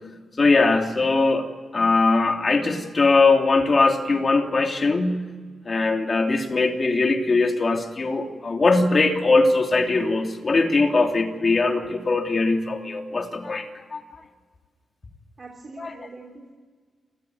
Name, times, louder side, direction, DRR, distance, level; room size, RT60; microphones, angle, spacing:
voice 1, 0.4-1.5 1.7-5.2 5.7-14.0 15.8-16.1, left 3 dB, 40° left, 4 dB, 3.0 m, -21 dB
voice 2, 15.4-16.5, right 3 dB, 45° right, 2 dB, 3.0 m, -43 dB
29.0 x 14.5 x 9.3 m, 1.5 s
cardioid pair, 80°, 0 cm